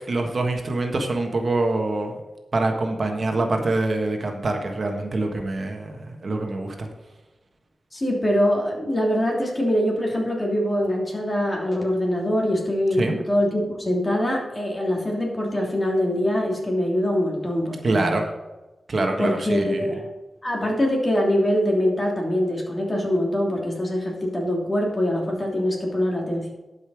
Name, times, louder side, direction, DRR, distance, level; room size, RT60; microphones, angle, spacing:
voice 1, 0.1-2.1 2.5-6.9 13.0-13.2 17.8-18.3 18.9-19.8, right 2 dB, 50° right, 3 dB, 1.4 m, -25 dB
voice 2, 7.9-18.2 19.2-20.0 20.4-26.5, equal, 25° left, -1 dB, 3.0 m, -23 dB
12.0 x 5.6 x 4.9 m, 1.1 s
wide cardioid pair, 90°, 0 cm